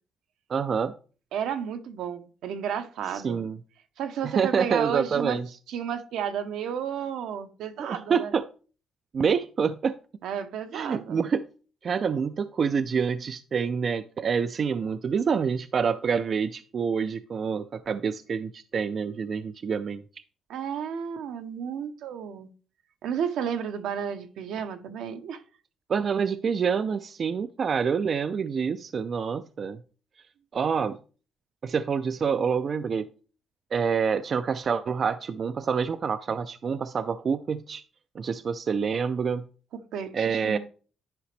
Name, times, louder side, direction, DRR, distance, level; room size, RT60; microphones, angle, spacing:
voice 1, 0.5-0.9 3.2-3.6 4.2-5.5 7.8-8.4 9.1-10.0 10.7-11.4 11.8-20.0 25.9-29.8 30.5-31.0 31.6-33.1 33.7-37.8 38.1-39.5 40.1-40.6, right 6 dB, 50° right, 0.4 m, -27 dB
voice 2, 1.3-3.5 4.0-5.4 5.7-8.3 10.2-11.2 20.5-22.5 23.0-25.4 39.7-40.6, right 8 dB, 80° right, 0.8 m, -32 dB
10.5 x 4.9 x 3.2 m
cardioid pair, 90°, 0 cm